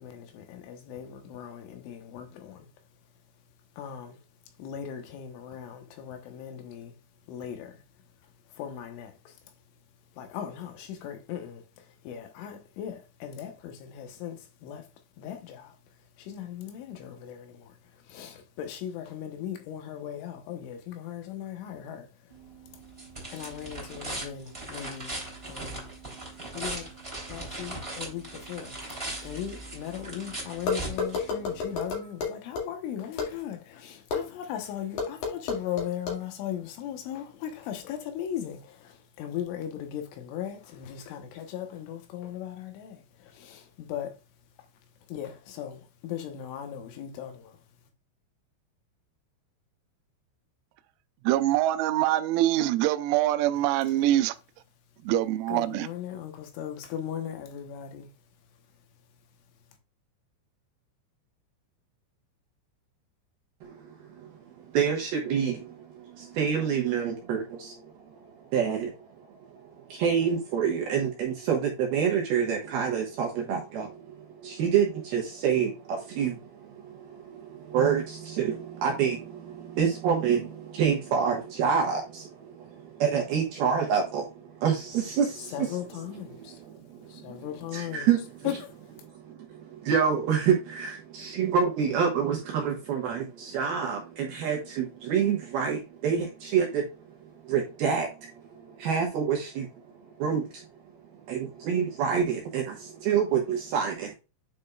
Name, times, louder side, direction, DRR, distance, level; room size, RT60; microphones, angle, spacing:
voice 1, 0.0-2.7 3.4-3.5 3.7-7.0 7.2-9.6 10.1-22.9 23.3-26.0 26.4-44.2 44.6-44.7 45.1-47.7 54.0-54.1 55.5-58.1 85.4-86.6 87.1-88.1 88.4-89.1, left 10 dB, 75° left, 3.4 m, -38 dB
sound 1, 22.3-31.7, right 2 dB, 10° right, 1.9 m, -39 dB
sound 2, 30.7-32.6 33.2-33.3 34.1-34.2 35.0-36.2, left 5 dB, 55° left, 3.0 m, -29 dB
voice 2, 51.3-54.4 55.0-55.9, right 14 dB, 90° right, 3.4 m, -24 dB
voice 3, 63.6-64.3 64.6-68.9 69.3-85.5 86.7-87.4 87.7-88.2 89.1-96.9 97.4-99.7 100.2-100.7 101.1-104.1, right 7 dB, 70° right, 2.5 m, -28 dB
9.4 x 5.2 x 2.3 m
omnidirectional pair, 5.9 m